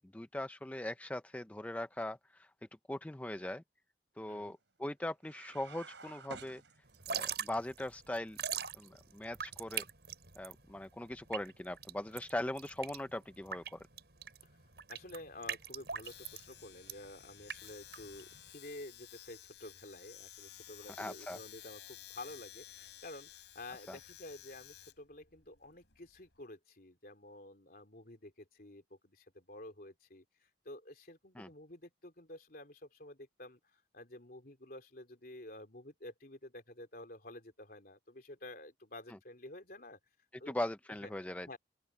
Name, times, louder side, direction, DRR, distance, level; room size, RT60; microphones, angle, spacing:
voice 1, 0.0-2.5 2.9-3.6 4.2-6.6 7.1-8.4 8.7-9.9 10.4-13.9 21.0-21.4 23.9-24.0 31.4-31.5 40.5-41.5, left 1 dB, 10° left, 0.4 m, -40 dB
sound 1, 5.2-7.3, right 4 dB, 85° right, 5.0 m, -51 dB
Drip / Trickle dribble, 6.9-18.5, right 8 dB, 65° right, 6.3 m, -42 dB
voice 2, 14.9-40.0 40.4-40.6 41.0-41.1 41.5-41.6, left 1 dB, 55° left, 3.5 m, -51 dB
Domestic sounds home sounds, 16.0-26.4, left 12 dB, 75° left, 4.3 m, -54 dB
open air
head